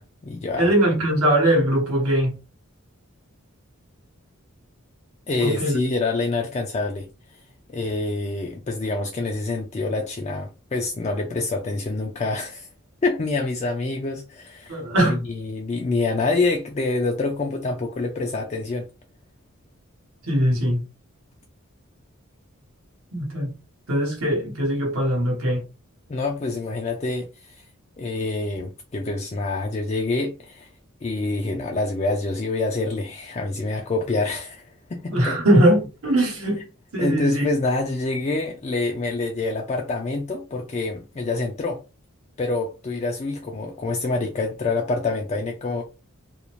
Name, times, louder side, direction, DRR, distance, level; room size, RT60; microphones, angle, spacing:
voice 1, 0.0-0.7 5.3-7.4 7.7-12.7 13.0-18.9 26.1-27.7 28.0-30.7 31.0-35.4 37.0-41.8 42.4-45.8, left 3 dB, 30° left, 0.3 m, -26 dB
voice 2, 0.5-2.3 5.4-5.8 14.7-15.2 20.3-20.8 23.1-23.5 23.9-25.6 35.1-36.6 36.9-37.5, right 1 dB, 80° right, 1.1 m, -21 dB
2.5 x 2.0 x 2.9 m
head